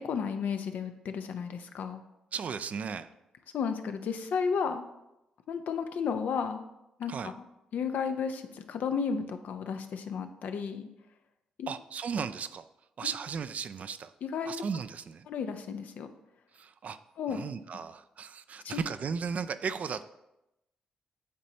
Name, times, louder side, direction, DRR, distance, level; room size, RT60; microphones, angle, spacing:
voice 1, 0.0-2.0 3.5-4.9 5.5-6.6 7.0-7.3 7.7-10.9 11.6-11.7 13.0-13.1 14.2-14.5 15.3-16.1 17.2-17.4 18.6-18.8, left 6 dB, 70° left, 8 dB, 0.5 m, -33 dB
voice 2, 2.3-3.1 7.1-7.3 11.7-12.7 13.0-14.1 14.5-15.3 16.5-17.0 17.3-20.0, right 6 dB, 55° right, 12 dB, 0.4 m, -35 dB
8.6 x 4.1 x 2.8 m, 0.90 s
supercardioid pair, 55°, 3 cm